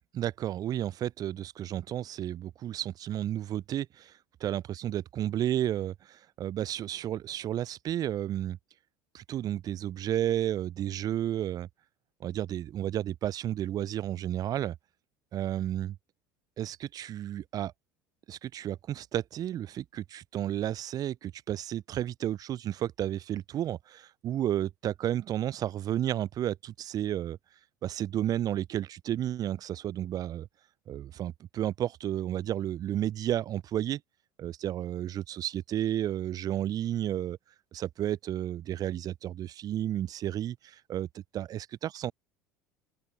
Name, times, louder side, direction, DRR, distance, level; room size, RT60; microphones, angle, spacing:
voice 1, 0.1-4.1 4.4-8.6 9.1-11.7 12.2-14.7 15.3-16.0 16.6-17.7 18.3-27.4 27.8-30.5 30.9-34.0 34.4-37.4 37.7-42.1, right 11 dB, 35° right, 0.5 m, -32 dB
open air
figure-of-eight pair, 70°, 11 cm